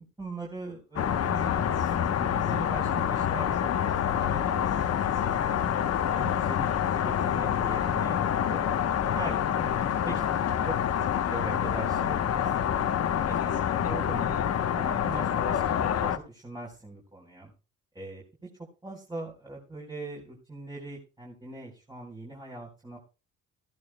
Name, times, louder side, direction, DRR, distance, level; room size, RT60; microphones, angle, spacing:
voice 1, 0.0-5.6 6.1-8.2 8.5-8.8 9.1-9.7 10.0-12.7 13.2-13.4 13.8-14.4 14.7-17.5 17.9-18.2 18.8-23.0, right 2 dB, 15° right, -2 dB, 4.1 m, -41 dB
sound 1, 1.0-16.2, left 9 dB, 55° left, 1.0 m, -27 dB
18.0 x 14.5 x 2.2 m, 0.32 s
cardioid pair, 90°, 30 cm